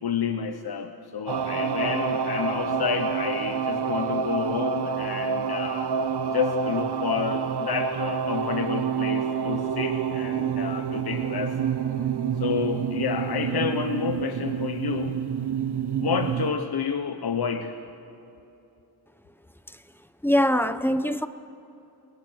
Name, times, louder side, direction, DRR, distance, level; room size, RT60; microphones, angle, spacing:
voice 1, 0.0-5.9 6.3-11.6 12.4-15.2 16.0-17.7, left 7 dB, 75° left, 7 dB, 1.1 m, -29 dB
sound 1, 1.3-16.5, right 7 dB, 90° right, 1.0 m, -28 dB
voice 2, 20.2-21.3, equal, 5° left, 11 dB, 0.7 m, -22 dB
30.0 x 21.5 x 6.4 m, 2.8 s
wide cardioid pair, 150°, 39 cm